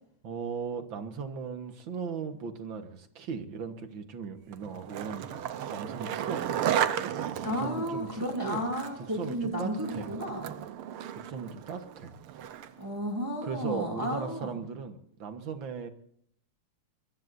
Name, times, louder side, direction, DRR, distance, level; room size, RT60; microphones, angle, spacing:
voice 1, 0.2-5.4 5.7-6.5 7.4-8.6 9.0-10.1 11.2-12.1 13.4-15.9, right 6 dB, 65° right, 7 dB, 2.1 m, -37 dB
Skateboard, 4.5-12.9, right 10 dB, 85° right, 1.8 m, -34 dB
voice 2, 7.4-10.5 12.8-14.5, equal, 10° right, 1 dB, 2.6 m, -33 dB
24.5 x 22.0 x 2.7 m, 0.64 s
omnidirectional pair, 2.4 m